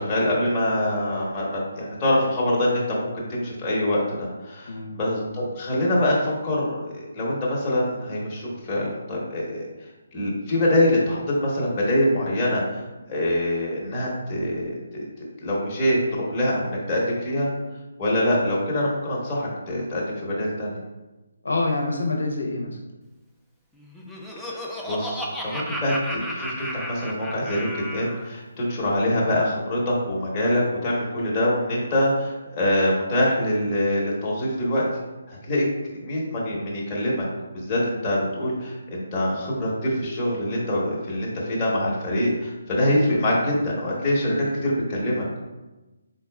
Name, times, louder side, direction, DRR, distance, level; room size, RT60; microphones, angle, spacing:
voice 1, 0.0-9.6 10.1-12.6 13.1-17.5 18.0-20.8 24.4-34.9 35.3-35.6 36.0-37.3 37.5-45.4, left 1 dB, 20° left, -6 dB, 1.1 m, -24 dB
voice 2, 4.7-5.0 21.4-22.8, left 2 dB, 75° left, 0 dB, 0.6 m, -26 dB
Laughter, 23.8-28.3, equal, ahead, 0.4 m, -33 dB
4.0 x 4.0 x 2.3 m, 1.1 s
figure-of-eight pair, 150°, 0 cm